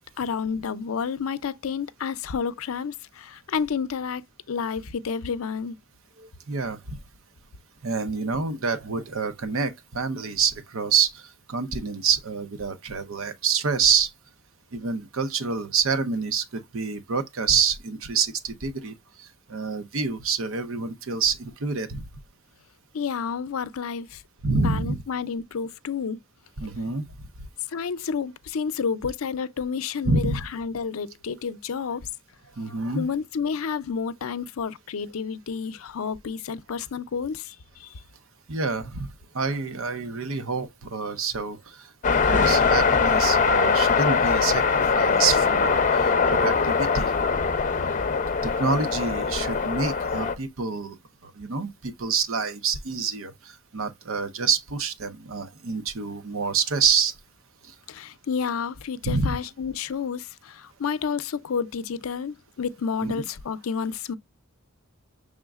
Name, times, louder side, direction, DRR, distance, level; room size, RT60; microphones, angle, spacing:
voice 1, 0.2-5.8 22.9-24.2 24.6-26.2 27.7-32.1 32.9-37.9 57.9-64.2, left 6 dB, 85° left, 0.5 m, -30 dB
voice 2, 6.2-7.0 7.8-14.1 14.7-22.0 24.4-25.0 26.6-27.0 30.1-30.5 32.6-33.1 38.5-47.1 48.4-51.0 51.2-57.1 59.0-59.4 63.0-63.1, right 5 dB, 75° right, 0.8 m, -27 dB
sound 1, 42.0-50.3, left 5 dB, 40° left, 0.6 m, -22 dB
6.2 x 3.6 x 2.3 m
head